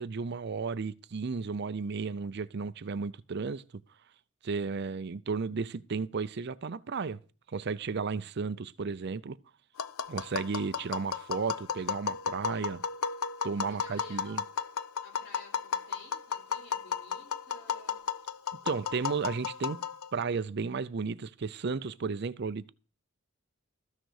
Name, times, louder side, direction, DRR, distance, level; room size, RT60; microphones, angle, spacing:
voice 1, 0.0-3.6 4.4-7.2 7.5-9.4 10.1-12.8 13.4-14.4 18.6-19.8 20.1-22.7, right 5 dB, 50° right, 0.5 m, -33 dB
Tap, 9.8-20.2, left 6 dB, 85° left, 0.7 m, -34 dB
voice 2, 13.6-14.5 15.0-18.0, left 1 dB, 50° left, 4.8 m, -53 dB
13.5 x 6.5 x 6.4 m
head